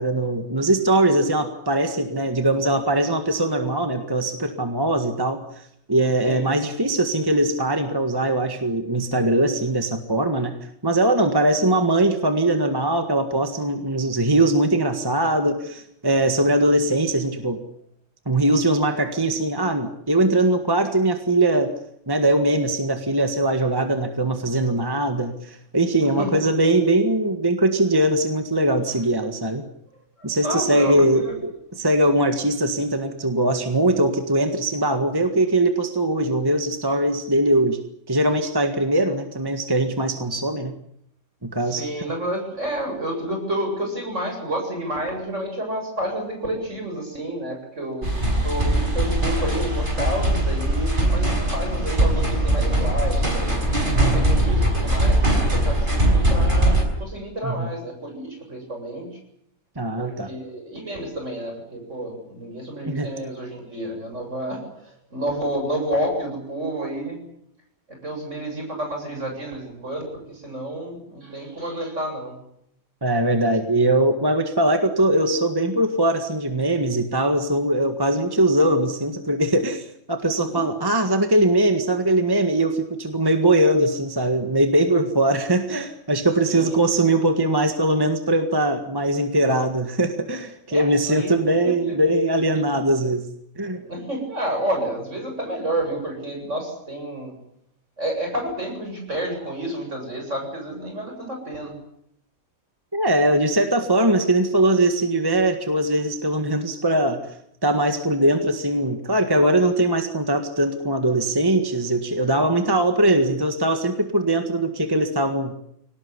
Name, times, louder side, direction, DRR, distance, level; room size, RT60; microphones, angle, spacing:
voice 1, 0.0-5.4 5.9-10.5 10.8-17.6 18.3-21.7 22.1-29.6 30.2-37.8 38.1-40.7 41.4-41.9 53.8-54.3 57.4-57.7 59.8-60.3 62.9-63.1 73.0-93.2 93.6-93.8 102.9-107.2 107.6-115.5, right 1 dB, 15° right, 6 dB, 1.7 m, -21 dB
voice 2, 26.0-26.5 30.2-31.3 41.6-48.1 48.4-53.6 54.1-59.1 60.0-67.2 67.9-72.4 80.4-80.8 86.5-86.8 90.7-91.3 91.6-92.0 92.5-92.6 93.9-97.3 98.0-101.7, right 1 dB, 55° right, 2 dB, 8.3 m, -30 dB
sound 1, 48.0-56.8, right 1 dB, 35° right, 5.9 m, -20 dB
23.5 x 18.5 x 9.7 m, 0.74 s
omnidirectional pair, 1.5 m